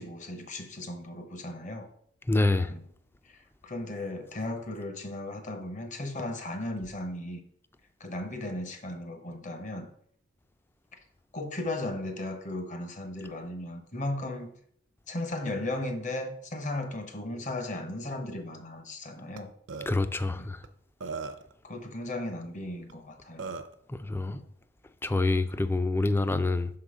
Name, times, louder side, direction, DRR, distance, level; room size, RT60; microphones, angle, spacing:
voice 1, 0.0-1.9 2.7-2.9 3.2-7.4 8.0-9.9 11.3-14.5 15.1-19.5 20.3-20.5 21.6-23.5 24.3-24.5, left 1 dB, 40° left, 0.9 m, -36 dB
voice 2, 2.3-2.7 19.9-20.6 23.9-24.4 25.0-26.7, left 2 dB, 10° left, 0.3 m, -26 dB
Burping eructation, 19.4-19.5 19.7-19.9 20.6-20.7 21.0-21.5 22.9-23.0 23.4-23.8, right 4 dB, 70° right, 0.5 m, -37 dB
6.2 x 3.8 x 4.9 m
head